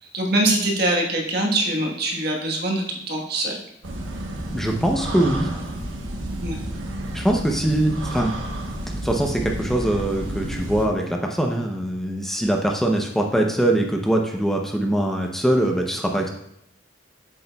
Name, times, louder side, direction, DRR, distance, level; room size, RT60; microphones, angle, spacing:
voice 1, 0.0-3.6 6.4-6.6, right 1 dB, 55° right, 0 dB, 1.2 m, -23 dB
sound 1, 3.8-10.9, right 1 dB, 90° right, 1.0 m, -31 dB
voice 2, 4.5-5.5 7.1-8.3 9.0-16.3, right 1 dB, ahead, 1 dB, 0.5 m, -22 dB
7.7 x 6.9 x 2.2 m, 0.75 s
head